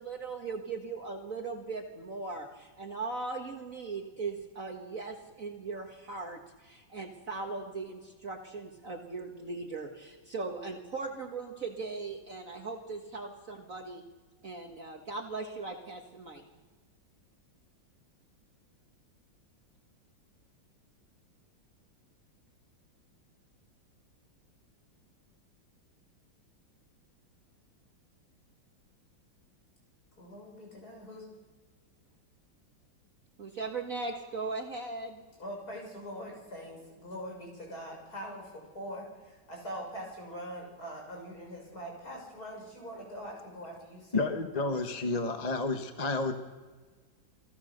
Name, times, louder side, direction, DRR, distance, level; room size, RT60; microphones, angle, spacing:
voice 1, 0.0-14.0 14.4-16.4 33.4-35.3, right 3 dB, 45° right, 2 dB, 1.9 m, -39 dB
voice 2, 30.2-31.3 35.4-44.3 44.5-45.0, equal, 50° left, -1 dB, 6.9 m, -43 dB
voice 3, 44.1-46.3, left 3 dB, 25° left, 6 dB, 1.2 m, -30 dB
28.5 x 18.0 x 6.6 m, 1.4 s
omnidirectional pair, 2.1 m